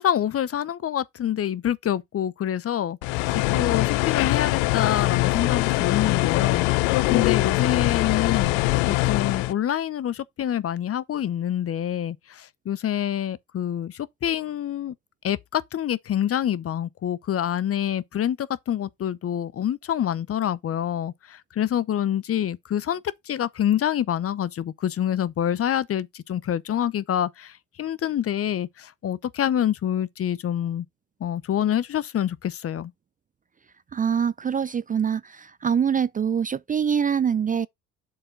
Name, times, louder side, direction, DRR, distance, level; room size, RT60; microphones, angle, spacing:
voice 1, 0.0-8.6 8.9-14.9 15.2-23.0 23.3-30.8 31.2-32.9, left 10 dB, 45° left, 0.7 m, -26 dB
sound 1, 3.0-9.5, left 21 dB, 80° left, 0.5 m, -22 dB
voice 2, 33.9-35.2 35.6-37.7, right 7 dB, 25° right, 0.4 m, -24 dB
7.4 x 4.5 x 4.6 m
hypercardioid pair, 60°, 33 cm